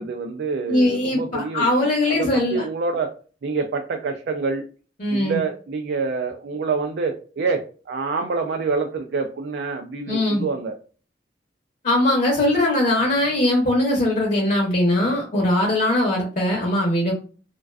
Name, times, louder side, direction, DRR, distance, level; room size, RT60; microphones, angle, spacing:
voice 1, 0.0-3.1 3.4-4.6 5.1-10.8, right 4 dB, 65° right, 4 dB, 0.3 m, -27 dB
voice 2, 0.7-2.6 5.0-5.4 10.1-10.4 11.8-17.1, left 1 dB, 45° left, -1 dB, 0.7 m, -20 dB
2.4 x 2.2 x 2.3 m, 0.38 s
head